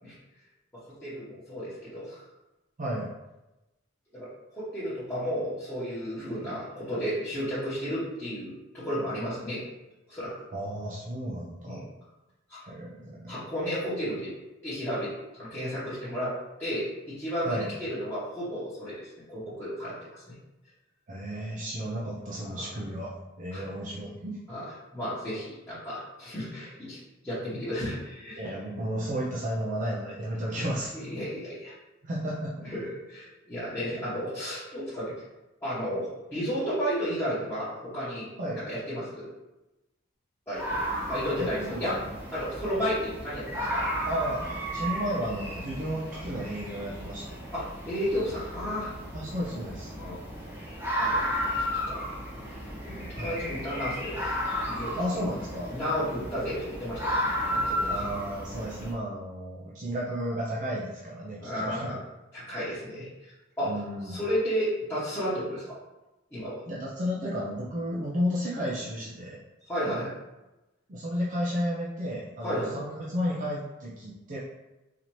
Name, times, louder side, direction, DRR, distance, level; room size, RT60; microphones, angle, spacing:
voice 1, 1.0-2.2 4.1-9.6 10.1-10.5 11.6-11.8 12.5-12.6 13.3-14.3 14.6-15.1 15.4-16.3 16.6-20.3 22.4-22.7 23.5-23.6 24.5-27.0 27.2-28.4 30.5-30.6 31.0-31.7 32.6-35.1 35.6-38.3 38.6-39.3 40.5-40.8 41.1-42.0 42.3-43.9 47.5-48.9 49.9-50.2 51.0-51.2 51.9-52.0 52.8-54.3 54.6-54.9 55.7-57.2 57.5-58.0 61.4-62.0 62.3-65.8 66.3-66.6 69.6-70.1 72.4-72.7, equal, 10° left, -14 dB, 1.1 m, -33 dB
voice 2, 10.5-11.8 12.6-13.5 17.4-17.7 21.1-24.4 28.4-31.0 32.0-32.5 38.4-38.6 41.2-42.1 44.1-44.4 44.7-47.3 49.1-49.9 53.1-53.4 55.0-55.7 57.8-61.9 63.6-64.2 66.7-69.4 70.9-74.4, equal, 40° right, -5 dB, 0.5 m, -33 dB
sound 1, 40.5-58.9, equal, 10° right, 1.2 m, -33 dB
4.1 x 2.8 x 3.0 m, 1.0 s
head